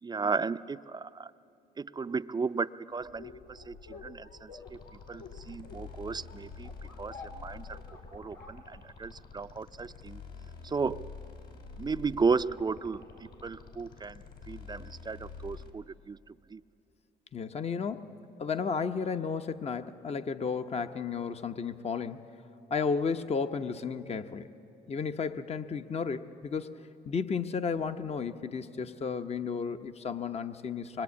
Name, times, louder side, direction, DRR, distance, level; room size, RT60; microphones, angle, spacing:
voice 1, 0.0-1.3 1.8-4.8 5.1-6.7 7.0-7.8 8.1-10.2 10.6-11.1 11.8-16.6, right 4 dB, 25° right, 13 dB, 0.5 m, -34 dB
sound 1, 3.0-9.2, left 4 dB, 80° left, 2.8 m, -50 dB
sound 2, 4.6-15.7, left 5 dB, 65° left, 3.2 m, -47 dB
voice 2, 17.3-22.3 22.7-24.5 24.9-26.7 27.0-31.0, left 5 dB, 40° left, 9 dB, 0.9 m, -33 dB
25.0 x 22.5 x 8.4 m, 2.9 s
cardioid pair, 80°, 17 cm